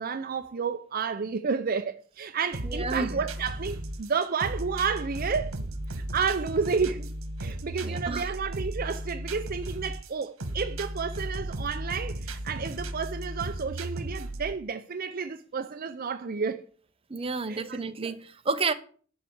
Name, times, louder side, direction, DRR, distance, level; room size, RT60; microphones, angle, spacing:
voice 1, 0.0-5.6 6.1-7.1 7.4-16.6 17.5-18.1, right 5 dB, 45° right, 0.5 m, -31 dB
sound 1, 2.5-14.5, right 1 dB, 80° right, 1.4 m, -35 dB
voice 2, 2.6-3.1 7.8-8.3 17.1-18.7, right 4 dB, 25° right, 0.9 m, -30 dB
12.0 x 4.6 x 8.5 m
head